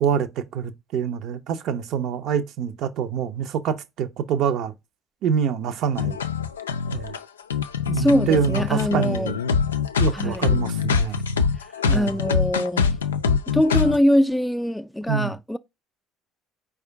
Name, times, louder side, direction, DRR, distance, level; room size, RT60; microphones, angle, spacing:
voice 1, 0.0-4.7 5.2-6.2 6.9-7.2 7.9-9.3 10.0-11.2 11.9-12.2 15.1-15.3, right 7 dB, 55° right, 0.6 m, -25 dB
sound 1, 6.0-14.0, left 5 dB, 85° left, 0.3 m, -24 dB
voice 2, 7.9-9.4 10.1-10.5 11.9-13.0 13.5-15.6, left 1 dB, 5° left, 0.4 m, -22 dB
4.9 x 2.3 x 4.5 m
figure-of-eight pair, 55°, 0 cm